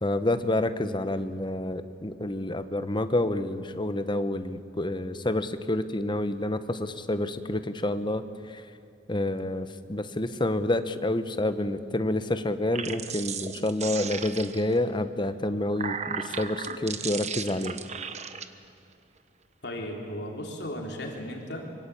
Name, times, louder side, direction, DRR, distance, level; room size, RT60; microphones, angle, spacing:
voice 1, 0.0-8.6 9.1-17.8, left 1 dB, 25° left, 11 dB, 1.1 m, -28 dB
sound 1, 12.6-14.8 15.5-18.5, right 6 dB, 40° right, 1.2 m, -35 dB
voice 2, 19.6-21.8, equal, 65° left, 1 dB, 3.7 m, -36 dB
25.5 x 23.5 x 8.6 m, 2.4 s
head